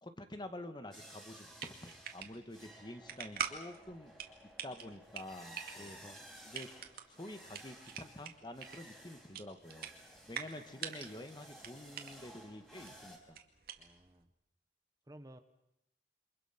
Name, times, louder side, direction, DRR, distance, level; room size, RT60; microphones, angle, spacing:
voice 1, 0.0-4.1 4.6-6.7 7.1-9.9 10.3-13.4, left 1 dB, 25° left, 8 dB, 1.8 m, -48 dB
sound 1, 0.9-13.2, equal, ahead, 4.8 m, -56 dB
sound 2, 1.3-14.2, right 7 dB, 55° right, 2.3 m, -46 dB
voice 2, 13.8-14.3 15.1-15.4, right 1 dB, 20° right, 9 dB, 1.1 m, -55 dB
28.5 x 25.5 x 6.0 m, 0.80 s
head